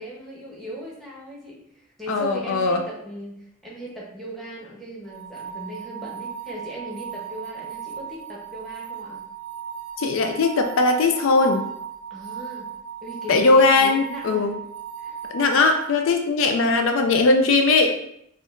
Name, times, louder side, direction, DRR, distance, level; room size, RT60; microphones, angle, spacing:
voice 1, 0.0-9.2 12.1-12.7 13.0-14.6 15.0-15.2 16.4-16.7, right 1 dB, ahead, -6 dB, 0.8 m, -38 dB
voice 2, 2.1-2.8 10.0-11.7 13.3-14.5 15.3-18.0, left 3 dB, 70° left, 5 dB, 0.4 m, -19 dB
sound 1, 5.1-15.9, right 8 dB, 60° right, 0.6 m, -37 dB
4.3 x 2.4 x 2.5 m, 0.73 s
head